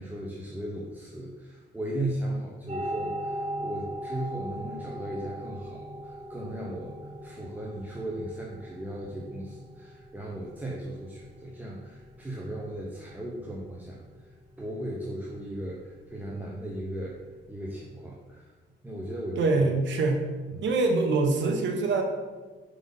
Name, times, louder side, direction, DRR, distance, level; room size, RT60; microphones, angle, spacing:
voice 1, 0.0-7.0 7.2-14.0 14.6-17.1 17.5-18.5 18.8-19.6 20.6-20.7, right 1 dB, 10° right, -3 dB, 0.9 m, -36 dB
sound 1, 2.7-17.4, right 1 dB, 30° right, 1.2 m, -41 dB
voice 2, 19.4-20.3 20.6-22.0, right 3 dB, 70° right, 4 dB, 1.0 m, -24 dB
4.9 x 4.0 x 5.5 m, 1.4 s
cardioid pair, 90°, 20 cm